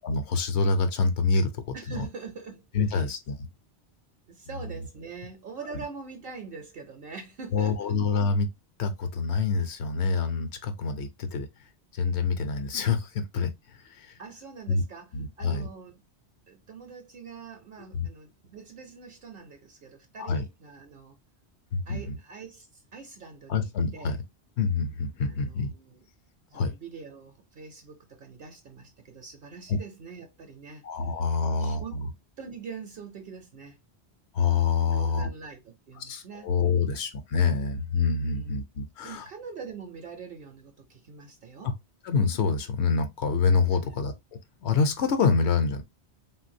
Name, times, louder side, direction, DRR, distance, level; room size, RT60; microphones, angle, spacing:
voice 1, 0.0-2.1 2.7-3.4 4.5-4.8 7.5-8.5 8.8-11.5 11.9-14.2 14.7-14.8 15.1-15.7 17.9-18.1 20.2-20.4 21.7-22.2 23.5-24.2 24.6-25.7 26.5-26.7 29.7-29.8 30.8-32.1 34.3-35.3 36.0-39.2 41.6-41.7 42.0-44.1 44.6-45.8, left 4 dB, 80° left, 1.0 m, -26 dB
voice 2, 1.7-3.1 4.3-8.0 14.2-15.1 15.4-16.0 16.5-21.2 21.9-24.2 25.2-26.0 26.5-30.9 31.4-32.0 32.4-33.8 34.9-37.0 38.3-38.6 39.0-41.7 43.7-44.0, right 5 dB, 60° right, 0.8 m, -44 dB
3.4 x 2.5 x 2.5 m
omnidirectional pair, 1.1 m